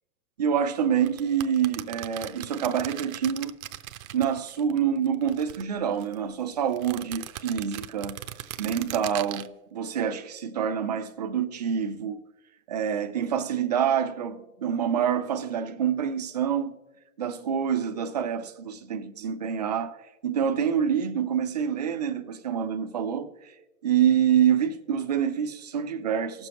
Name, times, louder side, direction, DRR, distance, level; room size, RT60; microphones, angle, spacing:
voice 1, 0.4-3.5 4.1-8.2 8.6-12.2 12.7-16.8 17.2-23.5 23.8-26.5, right 8 dB, 30° right, 0.4 m, -27 dB
sound 1, 1.0-4.8 5.1-6.2 6.7-9.5, right 13 dB, 70° right, 0.6 m, -39 dB
19.5 x 6.9 x 2.9 m
supercardioid pair, 170°, 44 cm